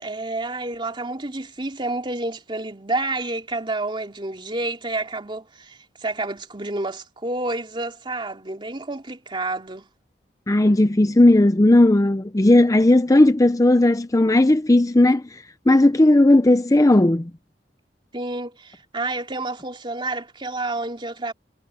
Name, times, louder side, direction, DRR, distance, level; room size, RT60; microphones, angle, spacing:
voice 1, 0.0-9.9 18.1-21.3, right 2 dB, 30° right, 3.1 m, -29 dB
voice 2, 10.5-15.2 15.7-17.3, left 1 dB, 20° left, 0.6 m, -15 dB
head